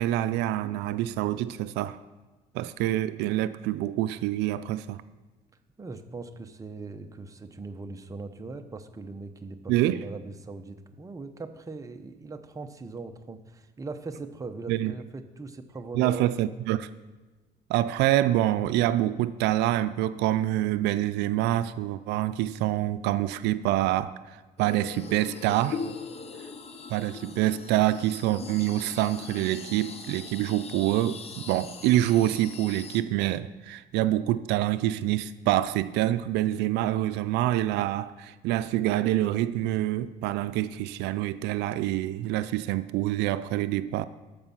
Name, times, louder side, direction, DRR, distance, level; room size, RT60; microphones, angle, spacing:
voice 1, 0.0-2.0 2.5-5.0 9.7-10.0 14.7-14.9 16.0-16.9 17.7-25.8 26.9-44.0, right 14 dB, 90° right, 0.4 m, -26 dB
voice 2, 5.8-16.2, right 3 dB, 20° right, 0.8 m, -40 dB
sound 1, 24.6-33.0, left 5 dB, 35° left, 0.8 m, -41 dB
13.0 x 5.2 x 5.6 m
cardioid pair, 110°, 17 cm